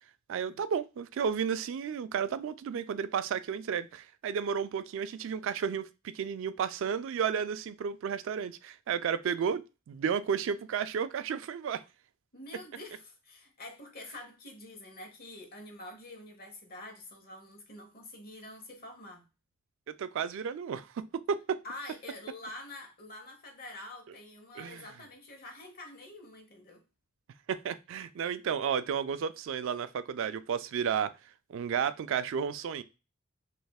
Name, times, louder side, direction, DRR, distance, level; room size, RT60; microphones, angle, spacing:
voice 1, 0.3-9.6 9.9-11.8 19.9-21.6 24.6-24.8 27.5-31.1 31.5-32.8, right 7 dB, 60° right, 0.3 m, -32 dB
voice 2, 12.3-19.2 21.6-26.8, left 2 dB, 45° left, 0.9 m, -47 dB
3.4 x 3.2 x 2.3 m
head